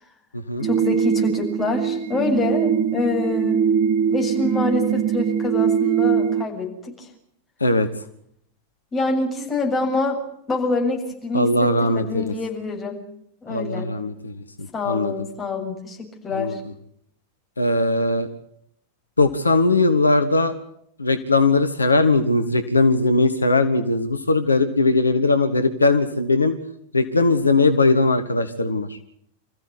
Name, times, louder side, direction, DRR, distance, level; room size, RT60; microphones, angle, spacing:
voice 1, 0.6-3.6 4.1-7.1 8.9-10.2 10.5-13.0 13.4-13.9 14.7-16.6, left 3 dB, 20° left, 1 dB, 7.1 m, -26 dB
sound 1, 0.6-6.4, right 8 dB, 45° right, 0.8 m, -22 dB
voice 2, 11.3-12.3 13.5-15.1 16.3-16.6 17.6-18.3 19.2-20.5 21.0-26.6 26.9-29.0, left 2 dB, 80° left, 9 dB, 1.4 m, -19 dB
27.0 x 15.0 x 9.7 m, 0.71 s
figure-of-eight pair, 90°, 0 cm